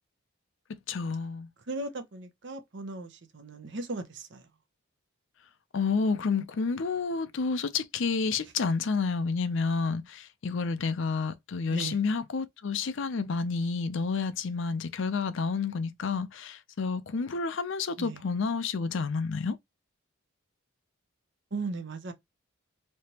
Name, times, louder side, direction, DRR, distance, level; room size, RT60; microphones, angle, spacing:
voice 1, 0.7-1.5 5.7-19.6, left 4 dB, 60° left, 0.5 m, -30 dB
voice 2, 1.7-4.5 11.7-12.0 18.0-18.2 21.5-22.1, right 3 dB, 55° right, 0.8 m, -37 dB
3.3 x 2.8 x 2.8 m
head